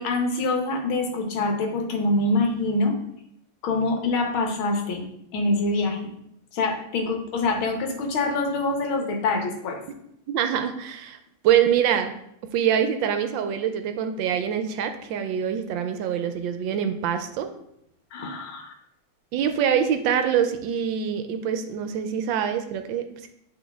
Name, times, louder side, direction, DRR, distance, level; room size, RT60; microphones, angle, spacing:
voice 1, 0.0-2.9 3.6-5.0 5.3-6.1 6.5-9.8 18.1-18.7, left 2 dB, 80° left, 4 dB, 1.8 m, -25 dB
voice 2, 10.3-11.2 11.4-12.1 12.5-17.5 19.3-23.3, right 9 dB, 75° right, 8 dB, 1.2 m, -24 dB
8.3 x 3.8 x 3.4 m, 0.75 s
omnidirectional pair, 2.2 m